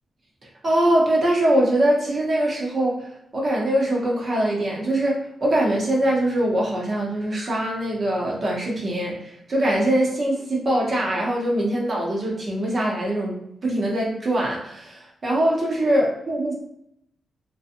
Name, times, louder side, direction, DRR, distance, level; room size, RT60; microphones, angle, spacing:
voice 1, 0.6-3.1 3.3-16.5, right 1 dB, 40° right, -3 dB, 0.8 m, -22 dB
2.7 x 2.2 x 2.5 m, 0.77 s
wide cardioid pair, 125°, 0 cm